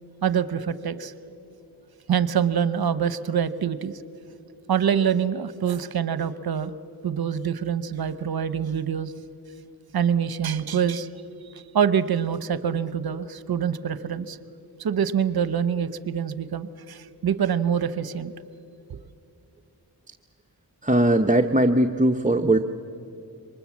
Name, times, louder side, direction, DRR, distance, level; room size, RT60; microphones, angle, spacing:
voice 1, 0.2-1.1 2.1-4.0 4.7-6.7 7.0-9.1 9.9-11.1 11.5-14.4 14.8-18.3 18.9-19.0, right 8 dB, 60° right, 15 dB, 0.9 m, -25 dB
voice 2, 20.8-22.6, right 1 dB, 20° right, 5 dB, 0.8 m, -19 dB
24.0 x 20.5 x 7.3 m, 2.6 s
cardioid pair, 60°, 42 cm